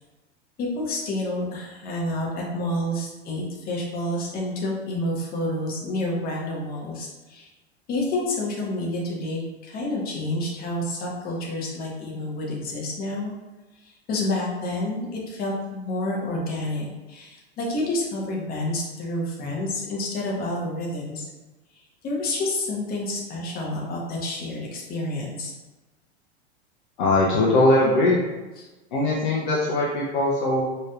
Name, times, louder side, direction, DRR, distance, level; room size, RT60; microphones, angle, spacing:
voice 1, 0.6-7.5 7.9-13.3 14.1-21.3 22.0-25.5 28.6-28.7, left 1 dB, 25° left, -3 dB, 1.1 m, -29 dB
voice 2, 27.0-28.2 28.9-30.6, left 2 dB, 50° left, -4 dB, 0.8 m, -20 dB
4.6 x 3.1 x 2.4 m, 1.1 s
figure-of-eight pair, 90°, 33 cm